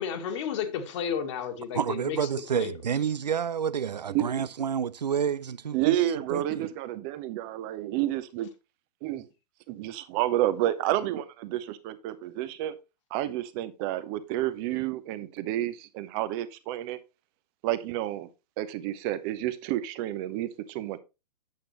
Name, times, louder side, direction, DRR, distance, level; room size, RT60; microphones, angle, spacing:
voice 1, 0.0-2.7, left 7 dB, 45° left, 1.6 m, -32 dB
voice 2, 1.7-6.0 6.3-6.4, right 7 dB, 80° right, 0.5 m, -29 dB
voice 3, 5.7-6.7 7.2-8.5 9.0-9.3 9.7-12.8 13.1-17.0 17.6-18.3 18.6-21.0, right 13 dB, 35° right, 0.9 m, -30 dB
8.6 x 7.7 x 3.2 m
figure-of-eight pair, 115°, 21 cm